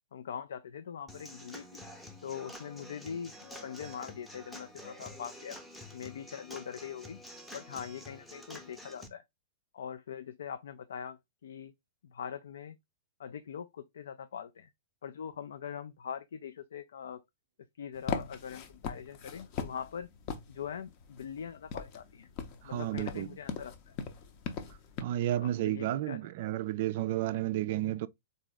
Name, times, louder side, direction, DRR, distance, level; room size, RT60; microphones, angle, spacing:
voice 1, 0.1-1.8 2.2-5.6 5.9-7.2 7.5-9.2 9.7-11.7 12.0-12.8 13.2-14.7 15.0-17.2 17.8-20.1 20.5-22.3 22.6-24.0 25.4-26.3, left 8 dB, 65° left, 0.3 m, -42 dB
Human voice / Acoustic guitar / Drum, 1.1-9.1, left 1 dB, 5° left, 0.7 m, -48 dB
sound 1, 17.9-25.0, left 6 dB, 40° left, 0.7 m, -41 dB
voice 2, 22.7-23.3 25.0-28.1, right 13 dB, 50° right, 0.3 m, -32 dB
3.7 x 2.7 x 3.2 m
figure-of-eight pair, 105°, 0 cm